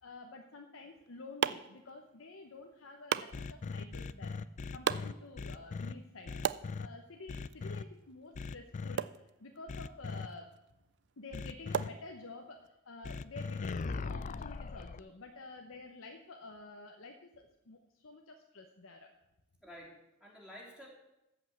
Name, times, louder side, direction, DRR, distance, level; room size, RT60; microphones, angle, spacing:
voice 1, 0.0-4.4 4.7-6.4 6.8-10.5 11.2-19.1, left 3 dB, 75° left, 3 dB, 1.0 m, -50 dB
sound 1, 0.7-12.7, right 8 dB, 55° right, 0.4 m, -41 dB
sound 2, 3.3-5.9 6.3-6.9 7.3-7.8 8.3-9.0 9.7-10.3 11.3-11.9 13.0-15.0, left 4 dB, 35° left, 0.4 m, -39 dB
voice 2, 19.6-20.9, equal, 5° right, -4 dB, 3.0 m, -51 dB
14.0 x 5.4 x 7.9 m, 0.91 s
head